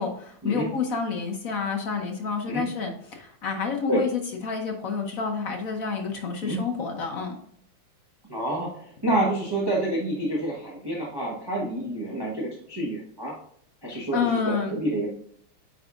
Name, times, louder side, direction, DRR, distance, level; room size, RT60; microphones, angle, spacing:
voice 1, 0.0-7.4 14.1-14.7, left 5 dB, 60° left, 3 dB, 0.9 m, -29 dB
voice 2, 8.3-13.4 13.8-15.1, right 1 dB, 20° right, -3 dB, 0.6 m, -28 dB
8.7 x 4.7 x 2.4 m, 0.67 s
omnidirectional pair, 2.3 m